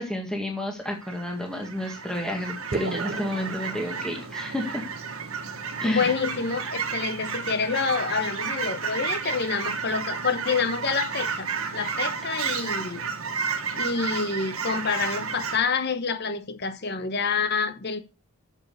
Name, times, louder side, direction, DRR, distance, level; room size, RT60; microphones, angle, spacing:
voice 1, 0.0-4.8 5.8-6.2 11.7-11.9, left 1 dB, 5° left, 1.8 m, -30 dB
Fowl / Chirp tweet, 0.8-15.6, right 5 dB, 75° right, 1.6 m, -32 dB
sound 1, 2.7-4.7, right 3 dB, 45° right, 0.7 m, -35 dB
voice 2, 5.8-13.0 13.7-18.0, left 5 dB, 50° left, 1.1 m, -27 dB
8.6 x 7.4 x 6.8 m
head